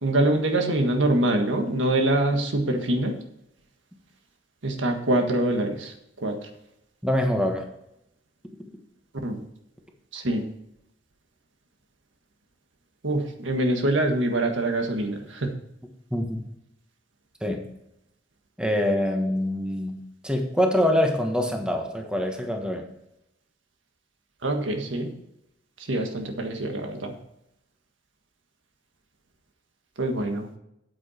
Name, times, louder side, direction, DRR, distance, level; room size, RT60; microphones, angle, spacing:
voice 1, 0.0-3.2 4.6-5.9 6.2-6.4 9.2-9.4 10.1-10.4 13.0-15.5 24.4-25.1 25.9-27.1 30.0-30.5, right 1 dB, 85° right, 4 dB, 1.6 m, -24 dB
voice 2, 7.0-7.6 16.1-16.4 17.4-17.6 18.6-22.8, left 1 dB, 5° right, 3 dB, 1.3 m, -25 dB
8.9 x 8.7 x 4.4 m, 0.80 s
head